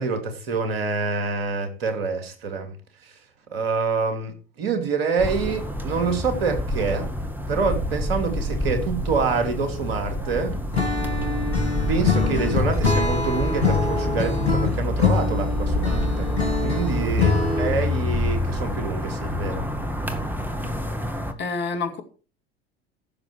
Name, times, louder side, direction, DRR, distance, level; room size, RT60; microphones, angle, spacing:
voice 1, 0.0-2.7 3.0-3.1 3.5-7.1 7.5-10.6 11.7-16.4 16.6-19.6, right 4 dB, 70° right, 2.6 m, -26 dB
sound 1, 5.2-21.3, left 1 dB, 5° right, 1.9 m, -27 dB
Acoustic guitar / Strum, 10.7-17.9, left 5 dB, 90° left, 1.9 m, -24 dB
voice 2, 21.4-22.0, left 4 dB, 35° left, 2.4 m, -28 dB
15.5 x 6.8 x 4.7 m
figure-of-eight pair, 70°, 31 cm